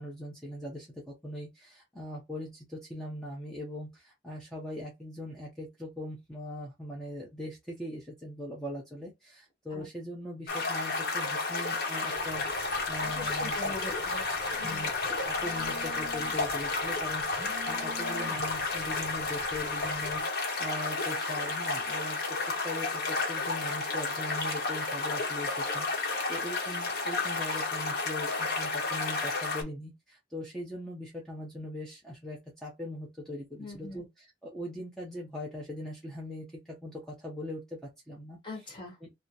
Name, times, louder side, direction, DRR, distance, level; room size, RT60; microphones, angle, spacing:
voice 1, 0.0-13.7 14.6-38.4 39.0-39.1, left 1 dB, 5° left, 0.8 m, -41 dB
sound 1, 10.5-29.6, left 3 dB, 60° left, 1.0 m, -32 dB
Telephone, 12.1-20.2, right 1 dB, 40° right, 1.2 m, -50 dB
voice 2, 13.0-14.2 14.5-14.9 33.6-34.0 38.4-39.0, left 2 dB, 30° left, 1.1 m, -42 dB
3.0 x 2.1 x 3.8 m
head